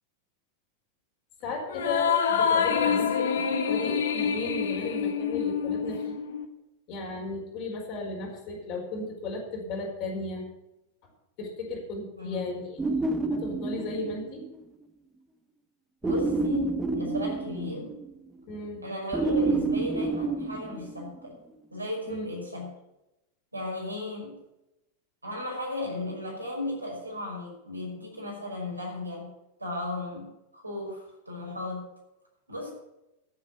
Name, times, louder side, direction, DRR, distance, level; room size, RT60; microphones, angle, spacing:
voice 1, 1.4-6.1 6.9-10.4 11.4-12.8 13.3-14.4 18.5-18.8 22.1-22.3, left 2 dB, 40° left, 0 dB, 4.6 m, -35 dB
sound 1, 1.7-6.4, left 7 dB, 60° left, 1.3 m, -26 dB
voice 2, 12.2-12.5 16.0-18.0 18.8-21.4 21.7-22.7 23.5-24.4 25.2-29.3 29.6-30.3 30.5-31.9 32.5-32.7, left 2 dB, 85° right, -1 dB, 5.4 m, -35 dB
sound 2, 12.8-14.5 16.0-18.1 19.1-21.3, right 3 dB, 10° right, 1.3 m, -29 dB
14.5 x 7.9 x 7.1 m, 0.91 s
figure-of-eight pair, 90°, 0 cm